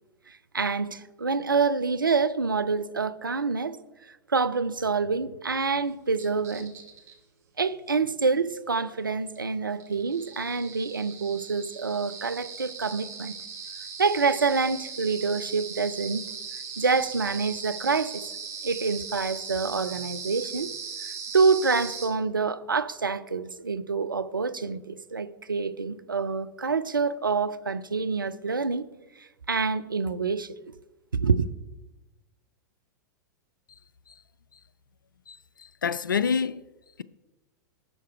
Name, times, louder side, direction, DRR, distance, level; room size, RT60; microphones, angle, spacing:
voice 1, 0.3-3.8 4.3-6.7 7.6-13.4 14.0-16.3 16.8-18.3 18.6-20.7 21.0-28.9 29.2-30.5 31.1-31.5, right 4 dB, 80° right, 0.4 m, -27 dB
sound 1, 6.2-7.1 9.4-9.5 9.8-22.1, right 6 dB, 25° right, 1.6 m, -39 dB
voice 2, 35.3-36.6, left 6 dB, 75° left, 0.4 m, -28 dB
11.0 x 4.5 x 4.6 m
figure-of-eight pair, 100°, 11 cm